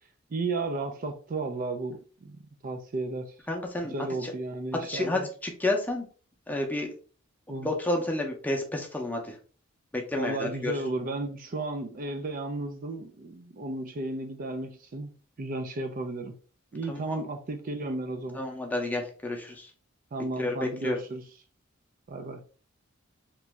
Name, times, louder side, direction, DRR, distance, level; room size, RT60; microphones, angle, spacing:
voice 1, 0.3-2.4 2.6-3.3 3.9-5.3 7.5-7.7 10.1-15.1 15.4-16.3 16.7-18.4 20.1-21.2 22.1-22.4, right 2 dB, 45° right, 0.4 m, -33 dB
voice 2, 3.5-3.9 4.2-4.3 4.9-6.1 6.5-6.9 7.6-9.4 9.9-10.7 16.9-17.2 18.3-19.7 20.4-21.0, left 2 dB, 10° left, 0.6 m, -30 dB
3.0 x 2.6 x 3.3 m
head